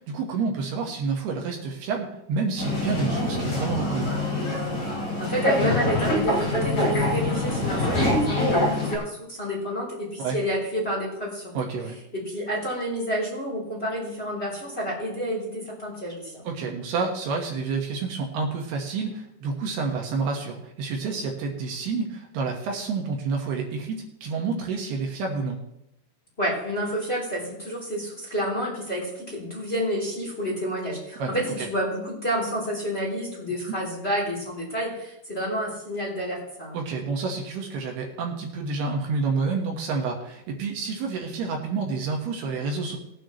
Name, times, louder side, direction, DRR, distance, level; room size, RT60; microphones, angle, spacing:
voice 1, 0.0-4.1 10.2-10.4 11.5-12.0 16.4-24.0 24.2-25.6 31.2-31.3 31.6-31.7 36.7-43.0, right 4 dB, 70° right, 1 dB, 3.2 m, -29 dB
sound 1, 2.6-9.0, left 1 dB, 30° left, 5.7 m, -25 dB
voice 2, 5.2-11.5 12.1-16.4 26.4-36.8, equal, 15° left, -4 dB, 3.0 m, -29 dB
20.0 x 9.2 x 3.1 m, 0.82 s
omnidirectional pair, 5.1 m